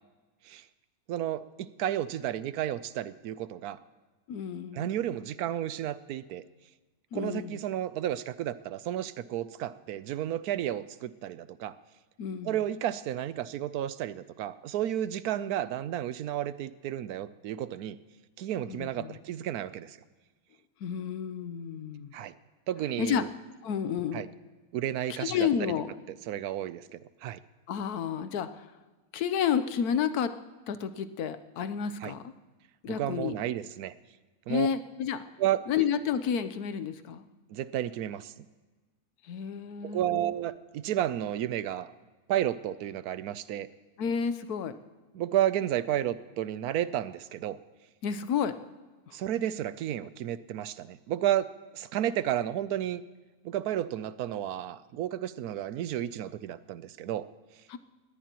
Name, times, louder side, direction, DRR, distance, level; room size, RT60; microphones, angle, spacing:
voice 1, 1.1-3.8 4.7-6.4 7.1-11.8 12.4-18.0 18.4-20.0 22.1-22.3 22.7-23.3 24.1-24.3 24.7-25.4 26.3-27.4 32.0-32.1 32.9-33.9 34.5-34.7 35.4-35.6 37.5-38.5 39.8-41.9 42.3-43.7 45.1-47.6 49.1-53.0 53.4-57.3, right 11 dB, 90° right, 15 dB, 1.1 m, -32 dB
voice 2, 4.3-5.0 7.1-7.6 12.2-12.6 18.7-19.2 20.8-22.1 23.0-23.2 23.6-24.3 25.2-25.9 27.7-28.7 29.1-30.3 30.7-32.3 32.8-33.3 34.5-35.2 35.7-37.3 39.2-40.4 44.0-44.8 48.0-48.6 49.1-49.2 57.7-57.8, left 8 dB, 85° left, 11 dB, 1.3 m, -31 dB
21.0 x 17.0 x 3.0 m, 1.3 s
omnidirectional pair, 1.6 m